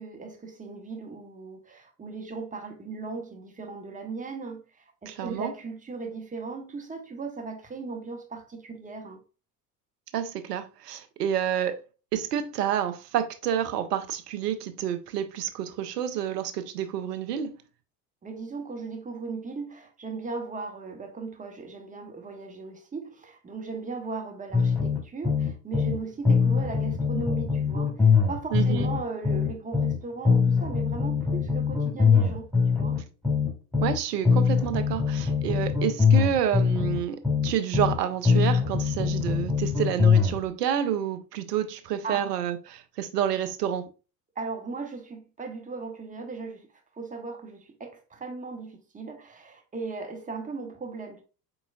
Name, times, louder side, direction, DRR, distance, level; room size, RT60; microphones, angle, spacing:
voice 1, 0.0-9.2 18.2-33.0 42.0-42.2 44.4-51.2, right 4 dB, 15° right, 1.1 m, -37 dB
voice 2, 5.1-5.5 10.1-11.8 12.1-17.6 28.5-28.9 33.8-43.9, right 9 dB, 75° right, 0.7 m, -29 dB
sound 1, 24.5-26.0 26.3-30.0 30.3-34.0 34.3-38.0 38.3-40.4, left 5 dB, 5° left, 2.4 m, -23 dB
4.6 x 3.9 x 2.3 m
figure-of-eight pair, 70°, 49 cm